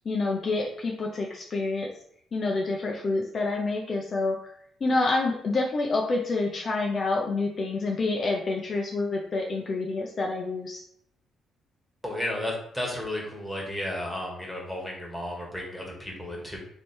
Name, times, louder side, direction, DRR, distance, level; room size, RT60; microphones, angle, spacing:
voice 1, 0.0-1.9 2.3-4.4 4.8-10.8, left 3 dB, 45° left, -1 dB, 0.6 m, -27 dB
voice 2, 12.0-16.6, left 1 dB, ahead, -2 dB, 1.5 m, -33 dB
3.3 x 3.1 x 4.4 m, 0.68 s
cardioid pair, 90°, 0 cm